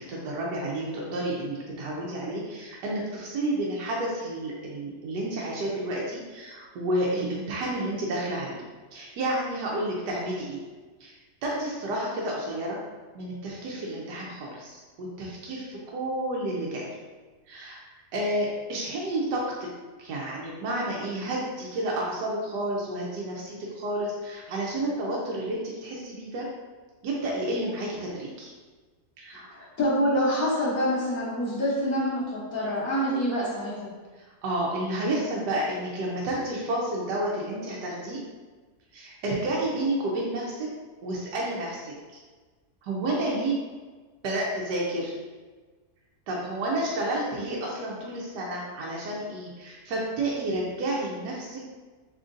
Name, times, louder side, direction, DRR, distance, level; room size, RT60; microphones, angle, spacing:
voice 1, 0.0-8.6 8.9-10.6 11.0-11.1 11.4-12.8 13.1-16.9 17.5-19.7 20.0-26.5 27.0-28.5 29.2-29.5 34.2-38.2 38.9-40.7 41.0-41.9 42.8-43.6 44.2-45.1 46.3-51.7, right 1 dB, 80° right, -4 dB, 1.3 m, -30 dB
voice 2, 29.5-33.9, equal, 60° left, -9 dB, 1.3 m, -26 dB
3.7 x 3.5 x 2.5 m, 1.3 s
omnidirectional pair, 1.8 m